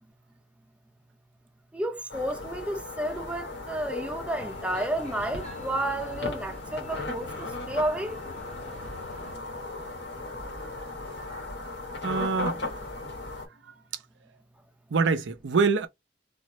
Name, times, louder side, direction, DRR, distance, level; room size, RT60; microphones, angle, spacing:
voice 1, 1.7-8.2, right 1 dB, 5° right, 0.6 m, -31 dB
sound 1, 2.1-13.5, left 2 dB, 75° left, 1.4 m, -37 dB
sound 2, 4.3-9.3, left 2 dB, 35° left, 1.1 m, -46 dB
voice 2, 11.2-11.7 12.0-13.1 13.6-14.0 14.9-15.9, right 5 dB, 85° right, 0.5 m, -27 dB
3.5 x 2.0 x 3.0 m
head